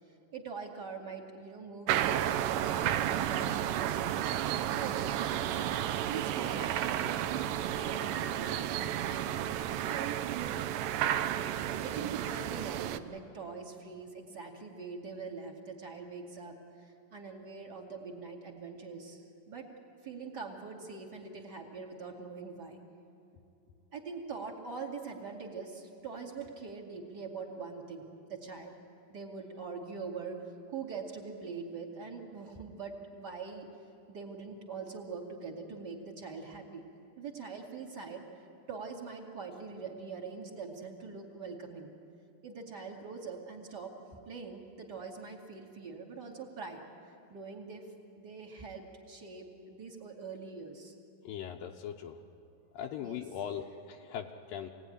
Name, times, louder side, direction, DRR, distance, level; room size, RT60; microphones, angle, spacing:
voice 1, 0.3-4.1 4.8-5.7 6.0-8.7 9.0-9.3 9.8-10.4 11.7-19.7 20.0-22.8 23.9-28.0 28.3-28.7 29.1-33.7 34.1-36.9 37.2-41.9 42.4-46.8 47.3-47.9 48.2-50.9 53.0-53.2, right 5 dB, 30° right, 0 dB, 2.5 m, -43 dB
sound 1, 1.9-13.0, right 11 dB, 75° right, 2.2 m, -32 dB
voice 2, 51.2-52.2 52.7-54.7, left 9 dB, 75° left, 1 dB, 2.5 m, -40 dB
26.0 x 18.0 x 10.0 m, 2.7 s
omnidirectional pair, 4.2 m